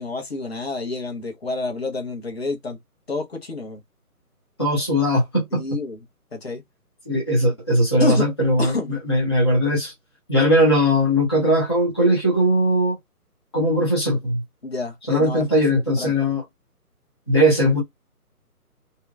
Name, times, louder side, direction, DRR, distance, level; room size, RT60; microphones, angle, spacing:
voice 1, 0.0-2.8 3.1-3.8 5.5-6.0 6.3-6.6 8.0-8.2 8.6-9.0 14.6-15.5 16.0-16.1, left 3 dB, 40° left, 1.1 m, -28 dB
voice 2, 4.6-5.6 7.1-9.9 10.3-13.0 13.5-14.4 15.1-16.4 17.3-17.8, equal, 15° left, 0.7 m, -19 dB
2.7 x 2.3 x 2.4 m
figure-of-eight pair, 145°, 46 cm